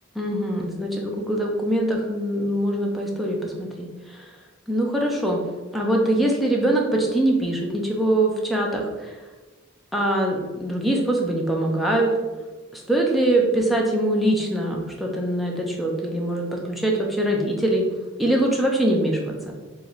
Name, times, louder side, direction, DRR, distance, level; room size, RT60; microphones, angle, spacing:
voice 1, 0.2-4.3 4.7-5.4 5.7-9.1 9.9-12.1 12.7-17.8 18.2-19.5, right 1 dB, ahead, -2 dB, 0.4 m, -23 dB
3.0 x 2.6 x 3.9 m, 1.2 s
head